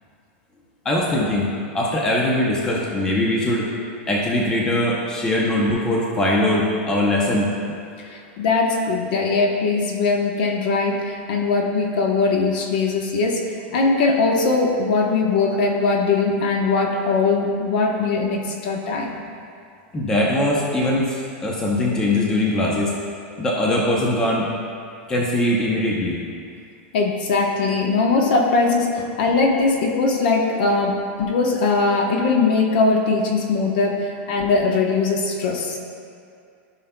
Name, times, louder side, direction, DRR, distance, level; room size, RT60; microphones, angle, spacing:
voice 1, 0.8-1.5 1.7-3.7 4.1-7.8 19.9-22.9 23.4-24.5 25.1-26.2, left 1 dB, 10° left, -3 dB, 0.6 m, -21 dB
voice 2, 8.0-19.1 26.9-35.8, left 3 dB, 50° left, 2 dB, 1.0 m, -20 dB
15.0 x 5.5 x 2.2 m, 2.4 s
supercardioid pair, 175°, 7 cm